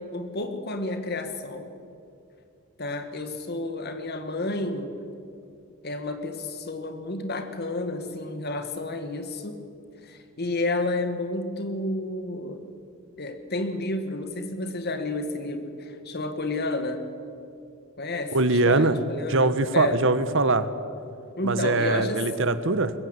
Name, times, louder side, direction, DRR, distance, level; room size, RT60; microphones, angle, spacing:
voice 1, 0.0-1.7 2.8-5.0 5.8-9.6 10.0-12.7 13.2-17.0 18.0-20.0 21.4-22.2, left 2 dB, 50° left, 8 dB, 1.9 m, -31 dB
voice 2, 18.3-19.0 19.3-20.7 21.4-22.9, right 3 dB, 60° right, 13 dB, 1.2 m, -22 dB
21.5 x 15.5 x 9.8 m, 2.6 s
head